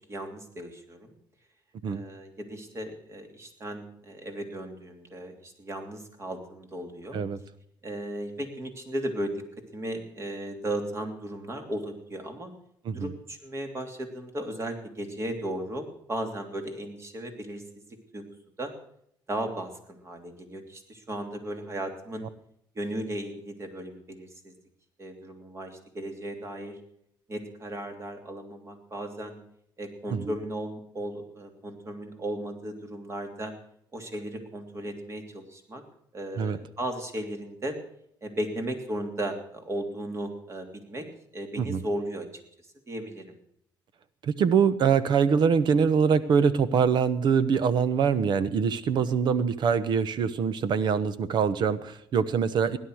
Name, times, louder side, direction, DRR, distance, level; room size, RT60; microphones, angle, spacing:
voice 1, 0.1-1.1 1.9-7.2 7.8-9.4 9.7-12.5 12.9-17.6 18.1-18.3 18.6-18.7 19.3-22.3 22.7-24.5 25.0-26.8 27.3-29.4 29.8-33.5 33.9-35.8 36.1-37.8 38.2-41.1 41.3-42.3 42.9-43.4 49.0-49.2, right 1 dB, 30° right, 5 dB, 3.0 m, -36 dB
voice 2, 44.2-52.8, right 6 dB, 60° right, 14 dB, 1.1 m, -24 dB
17.0 x 11.0 x 6.4 m, 0.72 s
cardioid pair, 95°, 9 cm